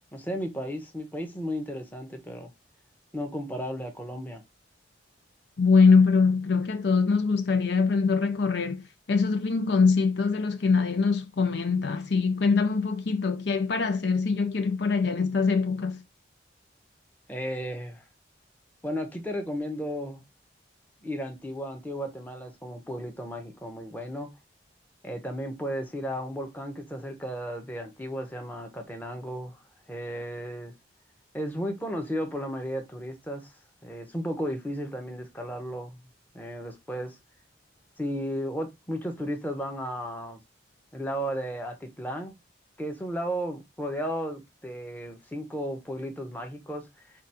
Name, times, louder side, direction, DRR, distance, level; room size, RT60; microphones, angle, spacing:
voice 1, 0.1-2.5 3.1-4.4 17.3-18.0 18.8-20.2 21.0-24.3 25.0-29.6 29.9-30.7 31.3-33.6 33.8-36.0 36.3-37.2 38.0-40.4 40.9-42.3 42.8-47.1, equal, 10° left, 0.9 m, -34 dB
voice 2, 5.6-16.0, left 4 dB, 60° left, 0.5 m, -23 dB
5.0 x 2.5 x 4.3 m
head